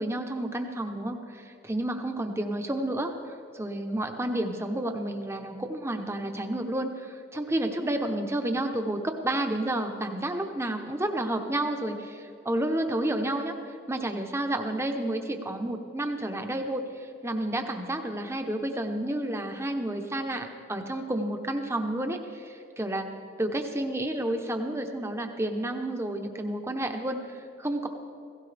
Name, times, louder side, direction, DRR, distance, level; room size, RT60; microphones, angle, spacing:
voice 1, 0.0-27.9, right 1 dB, 15° right, 5 dB, 0.8 m, -31 dB
16.5 x 16.5 x 3.4 m, 2.7 s
head